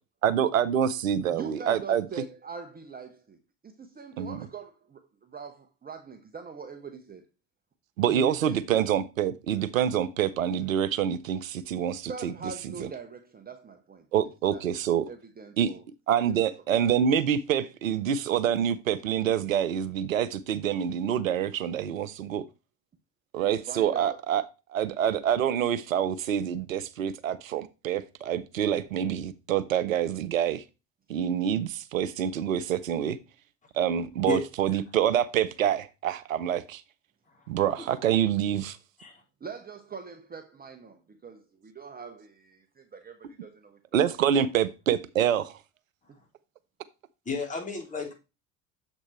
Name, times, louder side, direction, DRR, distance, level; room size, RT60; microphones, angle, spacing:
voice 1, 0.2-2.1 4.2-4.4 8.0-12.3 12.8-12.9 14.1-15.1 15.6-15.7 16.1-22.4 23.3-24.4 24.7-30.6 31.1-33.2 33.7-36.8 37.5-38.8 43.9-45.6, right 9 dB, 90° right, 0.5 m, -26 dB
voice 2, 1.3-7.2 8.1-8.9 12.1-14.1 14.5-14.6 15.1-15.8 16.3-16.5 16.8-16.9 23.4-24.2 39.4-44.0 44.4-44.5, right 5 dB, 25° right, 0.9 m, -42 dB
voice 3, 47.3-48.2, left 5 dB, 20° left, 3.6 m, -32 dB
7.4 x 4.5 x 4.2 m
figure-of-eight pair, 60°, 39 cm